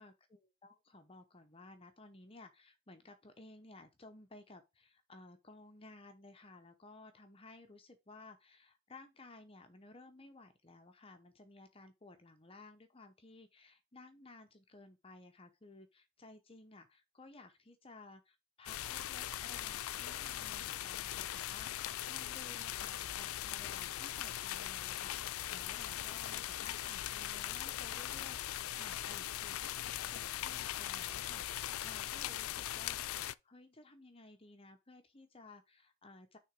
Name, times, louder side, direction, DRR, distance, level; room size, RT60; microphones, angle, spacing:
voice 1, 0.0-36.4, left 2 dB, 25° left, 0.8 m, -57 dB
sound 1, 18.7-33.3, left 12 dB, 85° left, 0.4 m, -40 dB
6.3 x 3.7 x 6.1 m
head